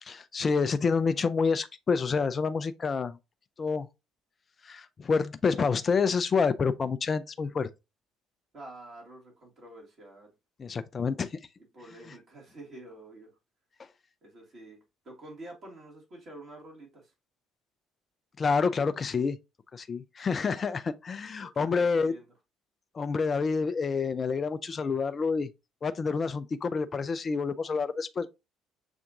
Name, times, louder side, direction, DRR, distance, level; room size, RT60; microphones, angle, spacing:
voice 1, 0.0-3.2 3.6-3.9 4.6-7.7 10.6-11.4 18.4-19.4 19.7-22.1 22.9-25.5 25.8-28.3, left 5 dB, 35° left, 0.3 m, -28 dB
voice 2, 8.5-10.3 11.7-13.3 14.2-14.8 15.0-17.1 21.4-22.3, right 1 dB, 45° right, 1.7 m, -48 dB
6.8 x 2.6 x 2.5 m
figure-of-eight pair, 50°, 0 cm